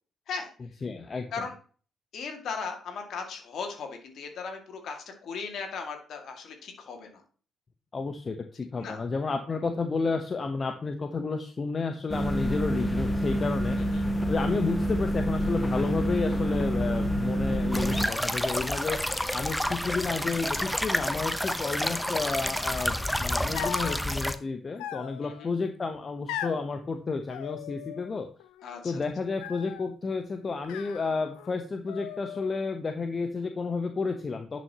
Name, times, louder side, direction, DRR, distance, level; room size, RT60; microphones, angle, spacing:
voice 1, 0.8-1.5 7.9-13.8 14.3-28.3 28.8-34.6, left 4 dB, 40° left, 7 dB, 0.9 m, -31 dB
voice 2, 2.1-7.2 8.8-9.0 13.9-14.0 23.5-24.0 25.2-25.5 28.6-29.0, left 5 dB, 65° left, 4 dB, 2.1 m, -38 dB
sound 1, 12.1-18.1, equal, 20° left, 1.5 m, -27 dB
sound 2, 17.7-24.4, left 1 dB, 5° left, 0.8 m, -29 dB
sound 3, 23.5-24.0 24.8-25.5 26.3-26.7 27.3-28.1 28.4-28.9 29.4-29.9 30.6-31.5 31.9-32.6, left 11 dB, 80° left, 0.6 m, -39 dB
10.5 x 6.3 x 2.9 m, 0.41 s
hypercardioid pair, 45°, 0 cm